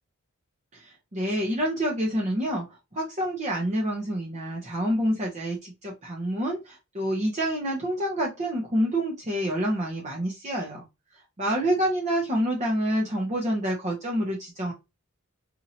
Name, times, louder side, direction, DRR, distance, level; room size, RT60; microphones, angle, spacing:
voice 1, 0.7-10.8 11.4-14.7, right 1 dB, 30° right, -2 dB, 0.8 m, -27 dB
4.2 x 2.7 x 2.7 m, 0.24 s
head